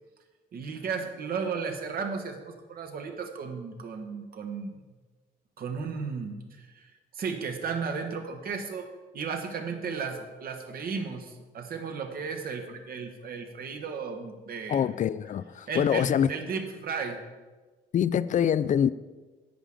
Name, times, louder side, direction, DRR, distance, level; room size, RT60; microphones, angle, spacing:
voice 1, 0.5-4.7 5.6-15.0 15.7-17.2, right 5 dB, 55° right, 1.4 m, -35 dB
voice 2, 14.7-16.3 17.9-18.9, left 9 dB, 45° left, 0.4 m, -25 dB
10.5 x 8.4 x 3.7 m
cardioid pair, 80°, 18 cm